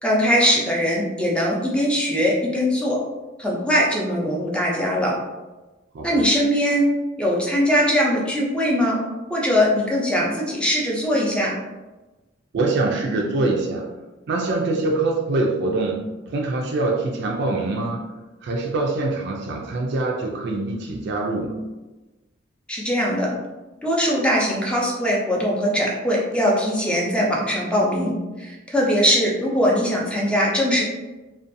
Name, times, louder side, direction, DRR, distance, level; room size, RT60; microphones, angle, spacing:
voice 1, 0.0-3.0 3.4-5.1 6.0-6.9 7.2-9.0 9.3-11.5 22.7-23.3 23.8-28.1 28.4-30.8, equal, 5° left, -3 dB, 0.5 m, -21 dB
voice 2, 5.9-6.3 12.5-13.9 14.3-18.1 18.4-21.7, right 2 dB, 60° right, 0 dB, 0.3 m, -24 dB
2.5 x 2.3 x 2.5 m, 1.1 s
head